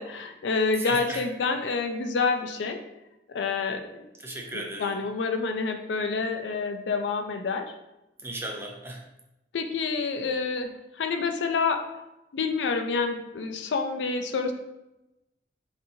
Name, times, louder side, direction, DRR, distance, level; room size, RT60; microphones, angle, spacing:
voice 1, 0.0-2.8 3.3-4.1 4.5-7.7 9.5-10.7 11.0-11.8 12.3-14.5, left 4 dB, 85° left, 6 dB, 0.4 m, -28 dB
voice 2, 0.8-1.2 4.2-5.0 8.2-9.0, right 2 dB, 15° right, 0 dB, 0.5 m, -36 dB
4.1 x 2.6 x 2.7 m, 0.93 s
head